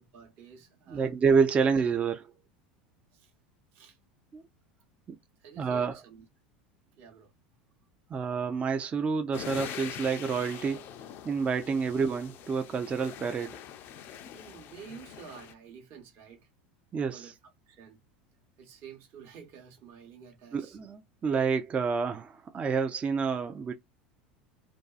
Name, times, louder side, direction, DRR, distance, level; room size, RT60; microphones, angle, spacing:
voice 1, 0.0-1.1 3.1-3.3 3.7-4.0 5.4-6.2 6.9-7.3 11.6-11.8 14.3-16.5 17.1-17.3 17.7-18.0 18.6-20.8, right 7 dB, 50° right, 0.8 m, -50 dB
voice 2, 0.9-2.3 4.3-4.4 5.1-5.2 5.6-6.0 8.1-10.9 11.3-13.6 16.9-17.3 20.5-23.7, right 5 dB, 25° right, 0.4 m, -28 dB
sound 1, 9.3-15.5, left 9 dB, 50° left, 0.4 m, -44 dB
2.6 x 2.3 x 2.3 m
hypercardioid pair, 80°, 5 cm